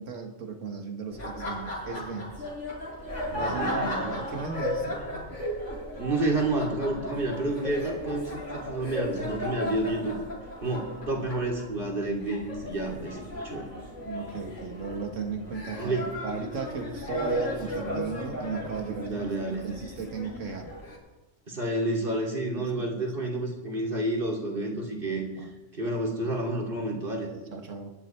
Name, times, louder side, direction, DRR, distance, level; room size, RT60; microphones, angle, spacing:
voice 1, 0.0-2.4 3.3-5.0 14.1-20.7 22.6-23.1 25.4-25.5 27.2-27.9, right 5 dB, 75° right, 5 dB, 1.9 m, -36 dB
Laughter, 1.1-21.0, equal, 70° left, 6.2 m, -35 dB
voice 2, 3.5-4.3 6.0-10.2 10.6-13.2 13.4-13.7 15.8-16.1 19.1-19.7 21.5-25.5 25.7-27.3, right 2 dB, 45° right, 0 dB, 3.1 m, -30 dB
24.5 x 12.0 x 4.5 m, 1.1 s
omnidirectional pair, 1.3 m